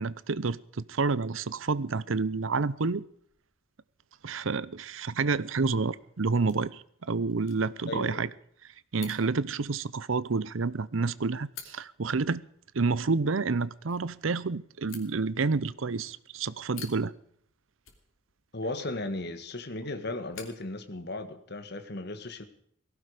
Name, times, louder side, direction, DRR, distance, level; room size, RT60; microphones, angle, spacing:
voice 1, 0.0-3.0 4.2-8.3 8.9-12.4 12.7-17.1, right 4 dB, 80° right, 0.7 m, -29 dB
sound 1, 1.9-21.5, left 9 dB, 85° left, 3.0 m, -55 dB
voice 2, 7.9-8.3 18.5-22.4, left 2 dB, 55° left, 1.7 m, -36 dB
18.5 x 16.0 x 5.0 m
head